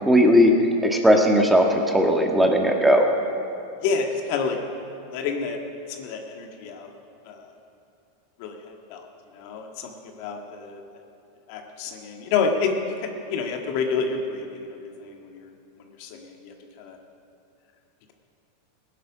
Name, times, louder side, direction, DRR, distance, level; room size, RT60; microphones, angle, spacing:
voice 1, 0.1-0.5 0.8-3.0, equal, 5° right, 2 dB, 1.7 m, -17 dB
voice 2, 3.8-4.6 5.1-5.6 5.9-6.9 7.2-7.5 8.4-9.1 9.3-10.8 11.5-15.5 16.0-17.0, left 5 dB, 60° left, 3 dB, 1.7 m, -29 dB
17.5 x 10.0 x 6.3 m, 2.6 s
hypercardioid pair, 100°, 0 cm